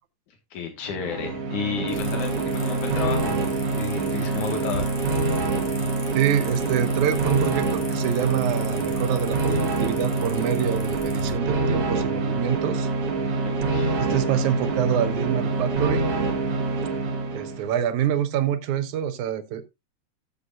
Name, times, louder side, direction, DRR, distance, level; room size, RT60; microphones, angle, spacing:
voice 1, 0.5-3.3 3.7-4.9 13.4-14.2, left 7 dB, 90° left, 3.2 m, -32 dB
sound 1, 0.8-17.7, right 3 dB, 55° right, 2.4 m, -25 dB
sound 2, 1.9-11.3, left 3 dB, 65° left, 3.4 m, -40 dB
voice 2, 6.1-12.9 14.0-16.1 17.3-19.7, right 10 dB, 80° right, 2.3 m, -26 dB
13.5 x 8.0 x 2.5 m
omnidirectional pair, 3.4 m